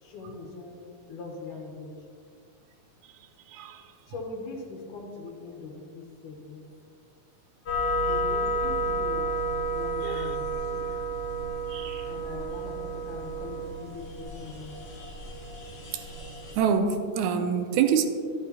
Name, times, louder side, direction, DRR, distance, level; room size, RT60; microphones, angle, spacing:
voice 1, 0.0-0.8 1.1-1.9 4.1-6.7 7.8-9.4 9.7-11.0 12.1-14.7, left 4 dB, 85° left, 2.6 m, -41 dB
voice 2, 3.5-3.8 10.0-10.3 11.7-12.1 16.6-18.1, right 7 dB, 80° right, 1.9 m, -26 dB
sound 1, 7.7-16.6, right 1 dB, 40° left, 1.8 m, -31 dB
12.0 x 8.4 x 2.8 m
omnidirectional pair, 3.5 m